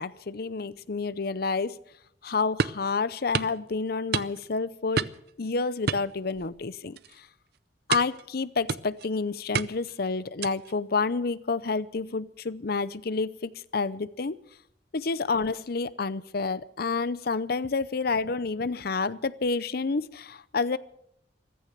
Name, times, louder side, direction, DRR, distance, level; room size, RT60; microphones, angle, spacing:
voice 1, 0.0-1.8 2.2-5.1 5.4-7.3 7.9-14.4 14.9-20.8, left 4 dB, 55° left, 0.7 m, -29 dB
sound 1, 2.6-2.9 3.3-3.6 4.1-4.6 5.0-5.3 5.9-6.6 7.0-7.2 7.9-8.2 8.7-9.1 9.5-9.9 10.4-10.7, right 6 dB, 60° right, 0.6 m, -30 dB
15.0 x 14.0 x 6.7 m
head